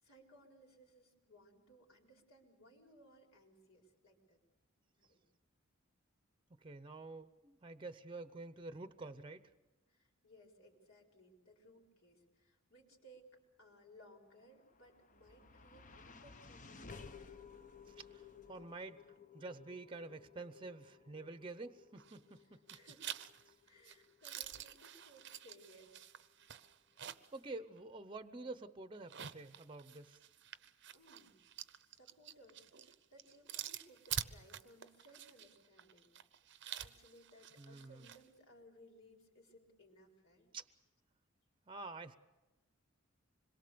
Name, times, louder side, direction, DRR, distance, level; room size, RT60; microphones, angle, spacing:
voice 1, 0.0-4.4 5.0-5.2 9.9-13.3 13.6-17.5 22.3-23.2 23.6-26.3 30.9-31.4 31.9-36.1 36.5-40.5, equal, 75° left, 1 dB, 4.3 m, -63 dB
voice 2, 6.6-9.5 17.9-19.0 19.3-22.6 23.5-23.6 27.0-30.2 37.6-38.1 40.5-40.7 41.7-42.2, right 3 dB, 25° right, 12 dB, 0.8 m, -49 dB
sound 1, 14.3-26.7, left 5 dB, 40° left, 0.9 m, -58 dB
sound 2, 22.0-22.4 22.7-27.4 27.8-27.9 28.9-38.2, right 10 dB, 55° right, 0.7 m, -48 dB
26.0 x 22.0 x 6.9 m, 1.1 s
head